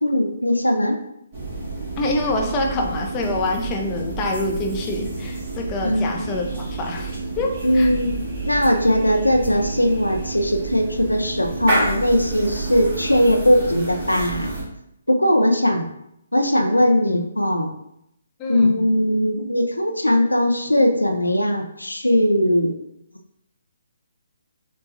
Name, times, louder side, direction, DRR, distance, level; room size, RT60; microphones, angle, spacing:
voice 1, 0.0-1.0 5.8-6.2 7.6-14.6 15.1-15.9 16.3-17.7 18.5-22.7, equal, 85° left, 4 dB, 0.5 m, -19 dB
sound 1, 1.3-14.6, right 3 dB, 35° right, 1.5 m, -29 dB
voice 2, 2.0-7.9 16.5-16.7 17.0-17.1 18.4-18.8, left 2 dB, 20° left, 1 dB, 0.5 m, -26 dB
6.0 x 2.3 x 2.6 m, 0.78 s
figure-of-eight pair, 135°, 0 cm